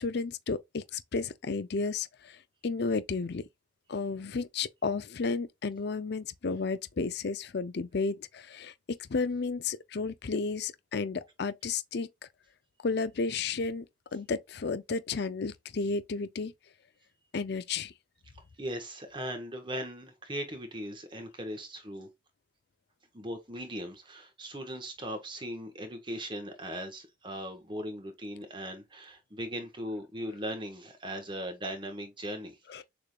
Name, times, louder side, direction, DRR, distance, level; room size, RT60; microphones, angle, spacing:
voice 1, 0.0-2.4 2.6-3.4 3.9-12.1 12.8-13.9 14.1-16.5 17.3-17.9 32.7-32.8, left 4 dB, 60° left, 0.5 m, -32 dB
voice 2, 18.6-22.1 23.1-32.8, equal, 25° right, 1.4 m, -39 dB
6.7 x 3.3 x 2.3 m
head